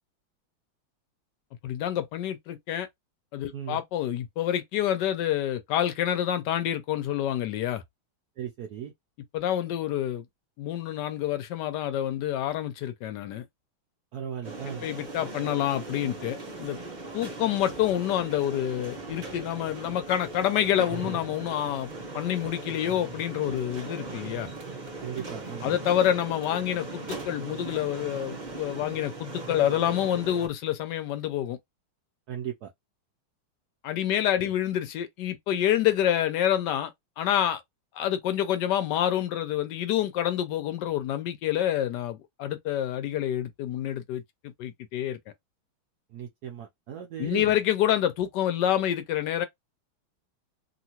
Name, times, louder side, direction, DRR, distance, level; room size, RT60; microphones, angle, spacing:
voice 1, 1.6-2.9 3.3-7.8 9.3-10.2 10.6-13.4 14.8-16.8 17.1-21.9 22.1-24.5 25.6-31.6 33.8-36.9 37.2-37.6 37.9-45.2 47.2-49.4, left 11 dB, 75° left, 1.0 m, -27 dB
voice 2, 3.5-3.8 8.4-8.9 14.1-14.8 25.0-25.8 32.3-32.7 46.1-47.6, right 10 dB, 75° right, 0.9 m, -37 dB
sound 1, 14.4-30.5, right 3 dB, 35° right, 0.7 m, -39 dB
2.9 x 2.7 x 2.8 m
omnidirectional pair, 2.2 m